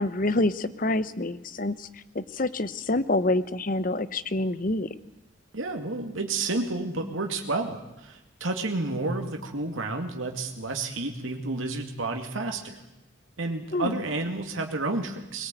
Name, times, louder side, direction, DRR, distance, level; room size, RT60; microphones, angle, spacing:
voice 1, 0.0-4.9 13.7-14.0, left 2 dB, 40° left, 15 dB, 0.9 m, -27 dB
voice 2, 5.5-12.8 13.4-15.5, right 3 dB, 80° right, 4 dB, 2.3 m, -30 dB
21.5 x 18.0 x 9.1 m, 0.96 s
head